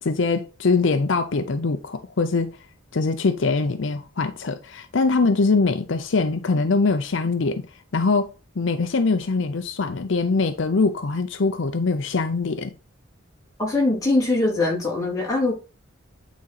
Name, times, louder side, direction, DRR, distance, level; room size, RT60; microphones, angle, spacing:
voice 1, 0.0-2.6 2.9-7.6 7.9-12.7, left 4 dB, 70° left, 0.6 m, -23 dB
voice 2, 13.6-15.5, left 2 dB, 15° left, 3.3 m, -22 dB
9.2 x 4.1 x 4.1 m
head